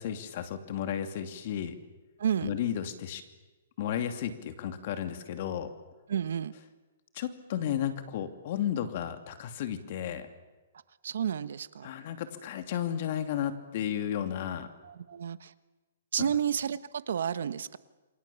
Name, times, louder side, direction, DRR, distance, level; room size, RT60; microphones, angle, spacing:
voice 1, 0.0-1.8 2.4-3.2 3.8-5.7 7.1-10.3 11.8-14.7 16.2-16.3, left 10 dB, 45° left, 8 dB, 2.7 m, -33 dB
voice 2, 2.2-2.5 6.1-6.5 11.0-11.9 14.8-15.5 16.1-17.8, right 8 dB, 70° right, 14 dB, 1.3 m, -31 dB
28.0 x 24.5 x 7.2 m, 1.2 s
hypercardioid pair, 155°, 0 cm